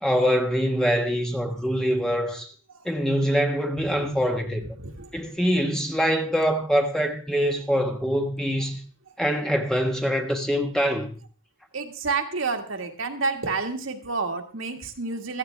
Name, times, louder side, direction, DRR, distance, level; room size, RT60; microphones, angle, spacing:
voice 1, 0.0-2.5 2.8-4.6 5.1-8.8 9.2-11.1, equal, 5° left, 1.3 m, -24 dB
voice 2, 4.8-5.3 9.1-9.2 11.7-15.4, right 4 dB, 75° right, 1.7 m, -30 dB
16.0 x 13.5 x 3.4 m
head